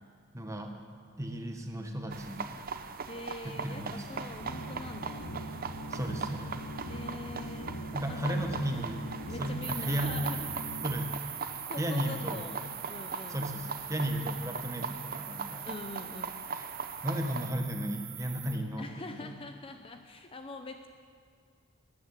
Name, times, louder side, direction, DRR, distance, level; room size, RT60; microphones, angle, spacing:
voice 1, 0.3-0.8 1.2-2.6 3.4-4.3 5.9-6.6 7.9-9.1 9.4-10.2 10.8-11.1 11.8-12.5 13.3-15.7 16.6-16.7 17.0-19.3, right 1 dB, 15° right, 4 dB, 1.3 m, -35 dB
sound 1, 2.1-17.5, right 5 dB, 45° right, 0.7 m, -40 dB
voice 2, 3.1-5.2 6.9-7.7 8.0-8.7 9.3-10.5 11.6-13.4 15.6-16.3 18.8-20.9, left 2 dB, 25° left, 6 dB, 0.6 m, -43 dB
sound 2, 4.4-10.8, equal, 90° left, 2.3 m, -41 dB
sound 3, 9.6-18.6, right 10 dB, 70° right, 1.7 m, -43 dB
13.5 x 11.0 x 8.2 m, 2.1 s
head